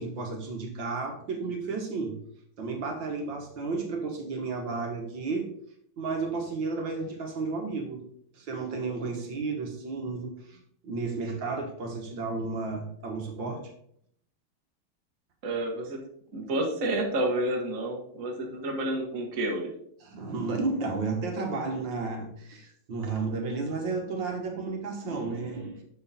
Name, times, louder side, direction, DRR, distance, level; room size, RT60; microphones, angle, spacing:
voice 1, 0.0-2.2 2.6-5.5 6.0-8.0 8.3-13.6 20.0-25.8, right 4 dB, 65° right, 3 dB, 2.0 m, -32 dB
voice 2, 15.4-16.0 16.3-19.7, right 1 dB, 45° right, 1 dB, 1.5 m, -30 dB
7.1 x 6.5 x 4.2 m, 0.68 s
omnidirectional pair, 2.2 m